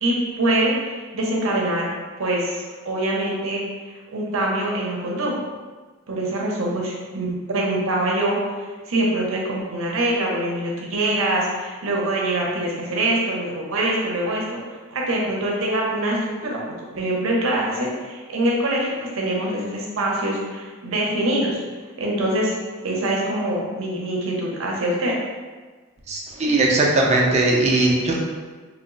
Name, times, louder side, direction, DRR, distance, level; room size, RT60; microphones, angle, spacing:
voice 1, 0.0-1.9 2.2-5.4 6.1-21.6 22.0-22.6 22.8-25.2, right 1 dB, 75° right, -2 dB, 0.7 m, -24 dB
voice 2, 26.1-28.2, right 2 dB, 30° right, -2 dB, 0.5 m, -19 dB
3.0 x 2.0 x 3.7 m, 1.4 s
head